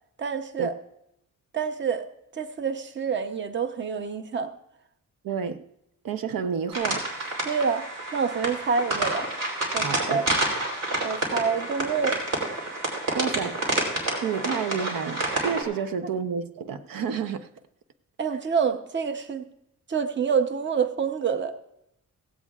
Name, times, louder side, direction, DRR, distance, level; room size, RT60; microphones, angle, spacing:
voice 1, 0.2-0.7 1.5-2.1 2.3-4.5 7.4-9.3 9.7-10.3 11.0-12.2 18.2-19.5 19.9-21.6, right 6 dB, 35° right, 0.7 m, -27 dB
voice 2, 5.2-5.6 6.0-7.4 9.8-10.2 13.2-13.6 14.2-17.5, right 6 dB, 90° right, 0.7 m, -30 dB
sound 1, 6.7-15.6, right 2 dB, 75° right, 3.5 m, -29 dB
16.5 x 16.5 x 2.4 m
wide cardioid pair, 160°, 33 cm